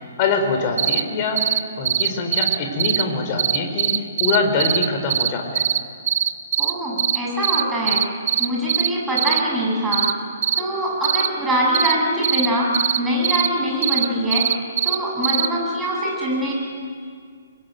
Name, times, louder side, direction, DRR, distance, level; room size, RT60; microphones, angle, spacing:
voice 1, 0.2-1.4 1.8-3.9 4.2-5.7, left 4 dB, 35° left, 5 dB, 4.4 m, -23 dB
sound 1, 0.8-1.0 1.4-1.6 1.9-3.0 3.4-5.3 5.6-5.8 6.1-6.7 7.0-7.2 7.4-7.6 7.9-8.9 9.2-9.4 9.9-10.1 10.4-10.6 11.0-11.3 11.7-11.9 12.2-12.5 12.7-13.0 13.2-13.5 13.8-15.0 15.2-15.5, right 10 dB, 45° right, 1.2 m, -20 dB
voice 2, 6.6-8.0 8.4-10.1 10.6-14.5 14.8-16.5, equal, 10° right, -4 dB, 7.8 m, -23 dB
28.0 x 22.5 x 9.3 m, 2.1 s
figure-of-eight pair, 125°, 0 cm